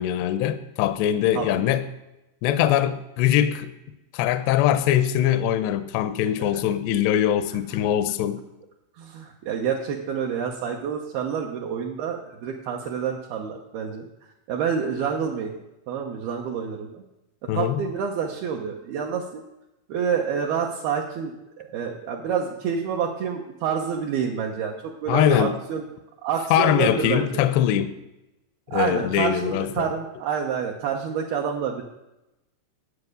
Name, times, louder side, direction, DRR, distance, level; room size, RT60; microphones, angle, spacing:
voice 1, 0.0-1.8 2.4-3.7 4.1-8.4 17.5-17.8 25.1-25.5 26.5-28.0 28.7-29.9, left 11 dB, 80° left, 2.7 m, -22 dB
voice 2, 9.0-14.1 14.5-15.6 15.9-17.0 17.6-19.4 19.9-25.9 26.2-27.4 28.7-31.8, right 7 dB, 70° right, 2.6 m, -28 dB
12.0 x 8.2 x 6.6 m
omnidirectional pair, 5.2 m